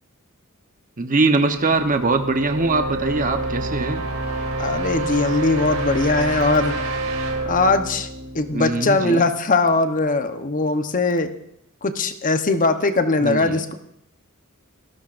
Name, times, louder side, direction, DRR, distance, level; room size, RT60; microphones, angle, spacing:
voice 1, 1.0-4.0 8.5-9.3 13.2-13.6, right 3 dB, 40° right, 6 dB, 1.0 m, -22 dB
sound 1, 1.5-9.3, right 2 dB, 70° right, 2.7 m, -28 dB
voice 2, 4.6-6.8 7.5-8.1 8.3-11.3 11.8-13.7, left 3 dB, 40° left, 8 dB, 0.9 m, -20 dB
28.5 x 13.0 x 2.6 m, 0.76 s
head